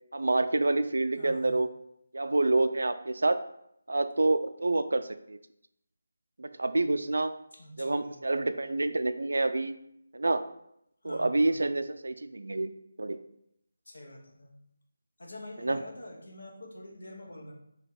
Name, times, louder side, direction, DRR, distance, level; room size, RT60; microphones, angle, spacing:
voice 1, 0.1-1.7 2.1-3.4 3.9-5.4 6.4-7.3 7.8-9.7 10.1-10.4 11.0-12.7 13.0-13.2 15.6-15.8, right 2 dB, 85° right, 10 dB, 0.3 m, -27 dB
voice 2, 1.1-1.6 7.5-8.2 11.0-11.7 13.8-14.6 15.2-17.5, left 1 dB, 75° left, 0 dB, 1.2 m, -46 dB
4.6 x 2.8 x 3.7 m, 0.76 s
figure-of-eight pair, 170°, 0 cm